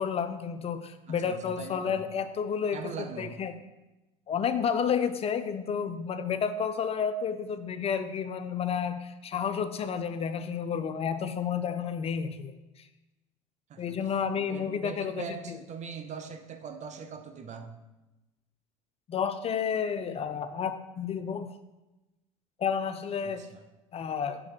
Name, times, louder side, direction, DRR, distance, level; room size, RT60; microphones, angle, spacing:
voice 1, 0.0-3.5 4.3-12.9 13.8-15.6 19.1-21.5 22.6-23.4 23.9-24.4, left 7 dB, 35° left, 0.4 m, -31 dB
voice 2, 1.1-2.1 2.7-3.5 13.7-14.0 14.4-17.8 23.2-23.6, right 6 dB, 45° right, 0.8 m, -41 dB
6.0 x 4.0 x 5.0 m
supercardioid pair, 85°, 17 cm